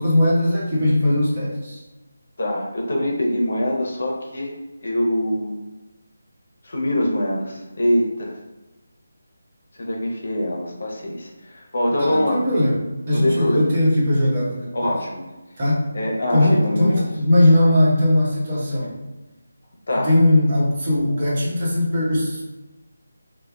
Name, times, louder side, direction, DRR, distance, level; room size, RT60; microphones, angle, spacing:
voice 1, 0.0-1.8 12.0-12.8 13.1-15.0 15.6-15.9 16.3-19.0 19.9-22.4, left 1 dB, 40° right, -6 dB, 1.0 m, -19 dB
voice 2, 2.4-4.5 4.8-5.5 6.6-8.4 9.8-12.5 13.1-13.7 14.7-15.2 15.9-17.1 19.9-20.1, left 1 dB, 60° left, -1 dB, 0.7 m, -23 dB
3.4 x 2.2 x 2.2 m, 1.1 s
figure-of-eight pair, 160°, 0 cm